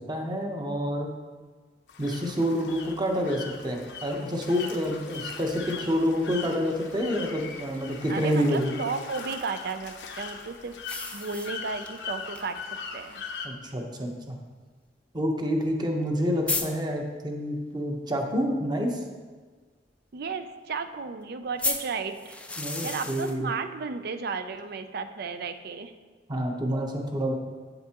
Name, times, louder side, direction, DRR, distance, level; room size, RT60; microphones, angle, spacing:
voice 1, 0.1-1.1 2.0-8.7 13.4-14.4 15.1-19.0 22.6-23.5 26.3-27.3, equal, 25° right, 2 dB, 0.9 m, -28 dB
sound 1, 1.9-13.5, left 5 dB, 75° left, 0.8 m, -40 dB
sound 2, 6.2-8.3 10.8-12.0 12.3-12.4 12.8-12.9 13.8-13.9 15.7-15.8 16.0-16.1 16.5-16.7 21.6-23.4, left 3 dB, 5° left, 0.5 m, -33 dB
voice 2, 8.1-10.8 11.1-13.2 20.1-22.4 22.8-25.9, right 5 dB, 60° right, 10 dB, 0.5 m, -34 dB
8.5 x 7.8 x 2.9 m, 1.4 s
head